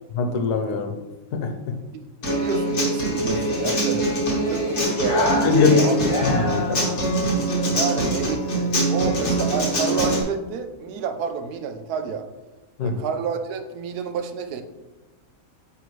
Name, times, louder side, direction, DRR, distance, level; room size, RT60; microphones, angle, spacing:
voice 1, 0.1-1.0 1.3-1.7 5.4-6.9 12.8-13.0, left 4 dB, 90° left, 5 dB, 1.3 m, -22 dB
Human voice / Acoustic guitar, 2.2-10.2, right 1 dB, 50° left, 1.6 m, -23 dB
voice 2, 2.3-4.1 4.5-5.4 5.8-6.2 7.7-12.3 12.8-14.6, right 6 dB, 85° right, 8 dB, 1.2 m, -29 dB
9.1 x 3.3 x 3.1 m, 1.1 s
omnidirectional pair, 1.6 m